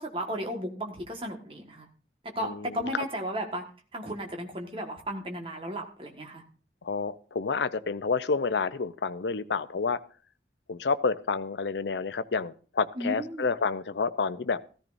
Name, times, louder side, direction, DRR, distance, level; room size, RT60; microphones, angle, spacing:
voice 1, 0.0-1.9 2.2-3.6 3.9-6.4 12.9-13.5, equal, 30° right, 3 dB, 1.6 m, -34 dB
voice 2, 2.4-2.7 6.8-10.0 10.7-14.6, left 4 dB, 80° left, 14 dB, 0.6 m, -29 dB
15.0 x 14.0 x 2.6 m, 0.39 s
head